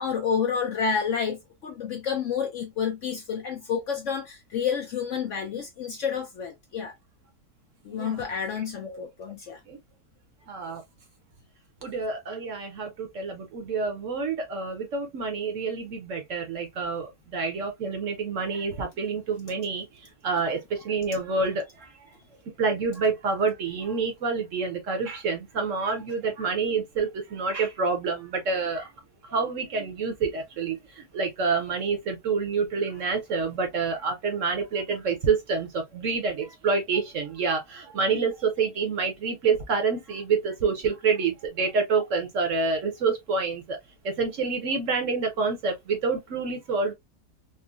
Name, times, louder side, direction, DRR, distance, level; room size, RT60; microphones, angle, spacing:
voice 1, 0.0-7.0 7.8-9.6, left 6 dB, 65° left, 0.8 m, -29 dB
voice 2, 7.9-8.2 8.8-9.1 9.7-9.8 10.5-10.8 11.8-19.9 20.2-21.9 22.6-28.9 29.3-43.8 44.0-46.9, right 4 dB, 60° right, 0.9 m, -28 dB
3.7 x 2.1 x 2.3 m
omnidirectional pair, 1.7 m